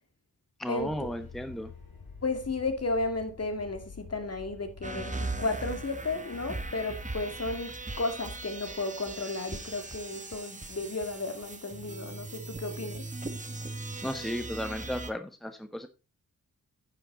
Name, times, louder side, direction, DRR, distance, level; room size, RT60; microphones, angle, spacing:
voice 1, 0.6-1.7 14.0-15.9, equal, ahead, 1.1 m, -34 dB
sound 1, 0.8-5.8, left 5 dB, 75° left, 4.5 m, -48 dB
voice 2, 2.2-13.0, left 2 dB, 40° left, 2.3 m, -33 dB
sound 2, 4.8-15.1, right 2 dB, 20° right, 1.6 m, -39 dB
9.8 x 7.6 x 4.0 m
supercardioid pair, 45°, 37 cm